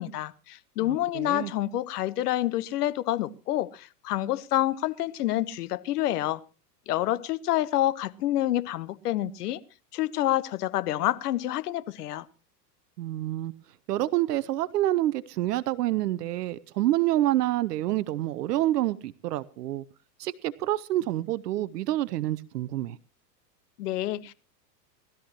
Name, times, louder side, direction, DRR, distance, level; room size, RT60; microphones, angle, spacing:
voice 1, 0.0-6.4 6.9-9.6 9.9-12.3 23.8-24.3, left 14 dB, 65° left, 1.1 m, -28 dB
voice 2, 0.8-1.5 13.0-13.5 13.9-19.8 20.2-23.0, right 14 dB, 70° right, 0.8 m, -27 dB
20.0 x 13.0 x 3.0 m
hypercardioid pair, 110°, 50 cm